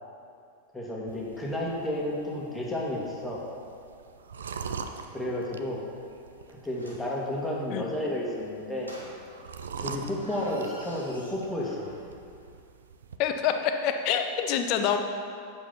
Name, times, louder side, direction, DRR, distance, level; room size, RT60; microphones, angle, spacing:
voice 1, 0.7-3.4 5.1-5.8 6.5-8.9 9.8-11.9, left 1 dB, 10° left, -4 dB, 1.9 m, -32 dB
sound 1, 1.1-13.2, right 5 dB, 65° right, 0.5 m, -43 dB
sound 2, 6.7-7.2 8.8-9.5 9.9-12.1 12.4-12.5, equal, 90° right, 1.4 m, -48 dB
voice 2, 13.2-15.0, left 8 dB, 40° left, 6 dB, 0.8 m, -26 dB
8.5 x 7.3 x 5.6 m, 2.4 s
figure-of-eight pair, 90°, 0 cm